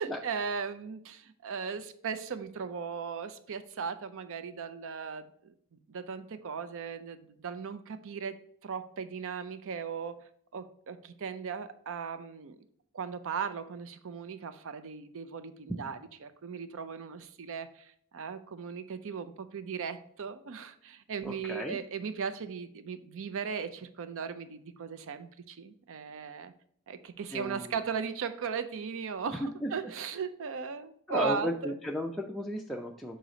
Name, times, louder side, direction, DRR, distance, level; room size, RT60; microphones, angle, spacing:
voice 1, 0.0-5.5 5.9-12.6 12.9-26.5 26.9-31.7, right 6 dB, 60° right, 12 dB, 0.5 m, -37 dB
voice 2, 21.2-21.8 27.3-27.7 29.4-29.7 31.1-33.2, equal, ahead, -2 dB, 0.4 m, -34 dB
6.5 x 3.9 x 3.9 m, 0.64 s
head